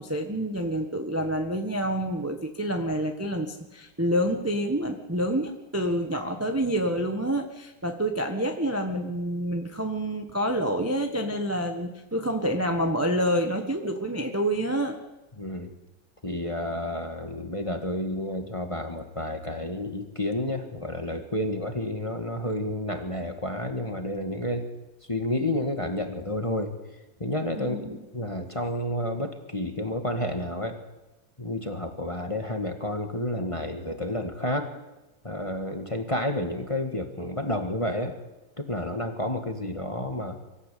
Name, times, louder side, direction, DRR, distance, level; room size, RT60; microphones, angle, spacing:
voice 1, 0.0-15.0 27.6-28.0, equal, 10° right, 4 dB, 1.2 m, -28 dB
voice 2, 15.4-15.7 16.2-24.7 25.1-26.7 27.2-30.8 31.4-34.7 35.2-38.2 38.6-40.4, left 1 dB, 15° left, 5 dB, 1.7 m, -30 dB
24.0 x 14.5 x 8.5 m, 1.0 s
omnidirectional pair, 2.1 m